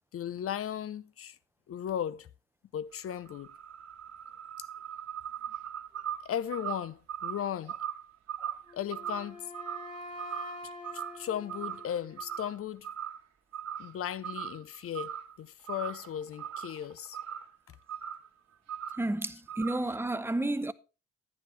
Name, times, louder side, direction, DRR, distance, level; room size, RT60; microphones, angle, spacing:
voice 1, 0.1-1.4 1.7-2.3 2.7-3.5 4.6-4.7 6.2-7.8 8.7-9.5 10.6-12.9 13.8-17.2 17.7-17.8, left 10 dB, 50° left, 0.6 m, -36 dB
sound 1, 2.9-10.6 10.8-11.2 11.5-12.6 12.8-13.2 13.5-14.0 14.2-15.4 15.6-17.6 17.9-18.3 18.7-19.1 19.5-20.0, right 9 dB, 60° right, 1.4 m, -40 dB
Wind instrument woodwind instrument, 8.6-12.6, left 1 dB, 25° left, 2.7 m, -46 dB
voice 2, 19.0-20.7, right 1 dB, 10° right, 0.6 m, -31 dB
10.5 x 9.6 x 3.2 m
cardioid pair, 90°, 30 cm